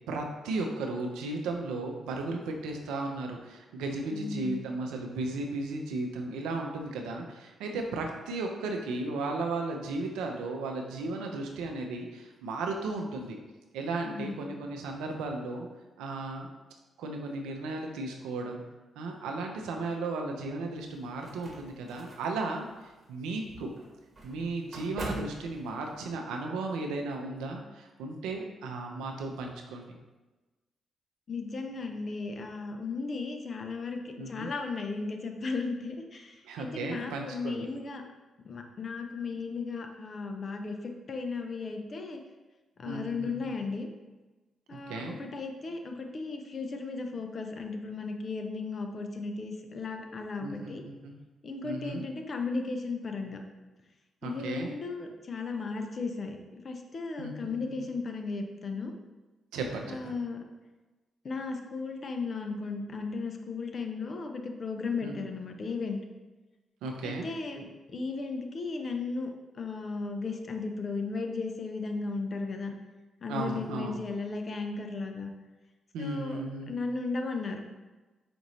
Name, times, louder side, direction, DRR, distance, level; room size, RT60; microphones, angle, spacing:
voice 1, 0.1-13.4 13.7-15.7 16.0-16.5 17.0-18.6 19.0-22.7 23.1-23.7 24.2-29.9 34.2-34.5 36.4-37.7 42.9-43.5 44.7-45.2 50.4-51.1 51.6-52.0 54.2-54.7 57.2-57.9 59.5-60.2 65.0-65.1 66.8-67.3 73.3-74.0 75.9-76.7, right 3 dB, 80° right, 2 dB, 0.5 m, -35 dB
voice 2, 4.1-4.6 14.0-14.5 31.3-38.0 38.5-42.2 42.8-43.9 44.7-50.8 51.4-53.4 54.2-56.4 56.6-58.9 59.9-60.4 61.2-66.0 67.0-69.3 69.6-72.7 73.2-75.3 76.0-76.4 76.7-77.6, left 4 dB, 50° left, 4 dB, 0.6 m, -35 dB
sound 1, 20.8-26.1, right 2 dB, 45° right, 1.1 m, -44 dB
5.0 x 2.6 x 3.1 m, 1.2 s
hypercardioid pair, 45°, 0 cm